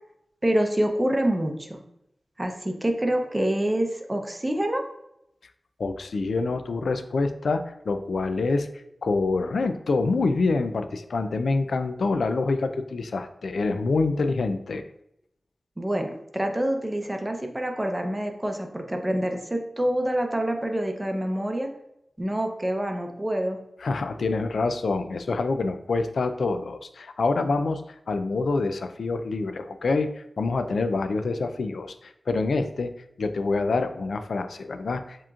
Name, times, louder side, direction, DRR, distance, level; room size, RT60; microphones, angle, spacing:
voice 1, 0.4-1.8 2.4-4.8 15.8-21.7 22.2-23.6, right 1 dB, 15° right, 4 dB, 0.6 m, -26 dB
voice 2, 5.8-8.7 9.0-14.8 23.8-27.8 28.1-30.1 30.4-32.9 33.2-35.3, left 3 dB, 85° left, 9 dB, 0.3 m, -26 dB
7.2 x 3.0 x 2.4 m, 0.80 s
wide cardioid pair, 90°, 0 cm